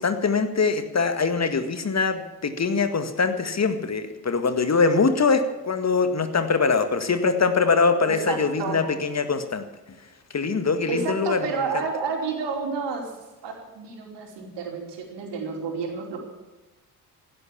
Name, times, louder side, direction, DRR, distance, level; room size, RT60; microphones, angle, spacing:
voice 1, 0.0-9.6 10.3-11.8, left 4 dB, 35° left, 9 dB, 1.9 m, -23 dB
voice 2, 8.1-8.8 10.9-13.1 13.4-16.2, right 5 dB, 60° right, 1 dB, 4.7 m, -30 dB
16.0 x 11.5 x 7.3 m, 1.1 s
hypercardioid pair, 50°, 47 cm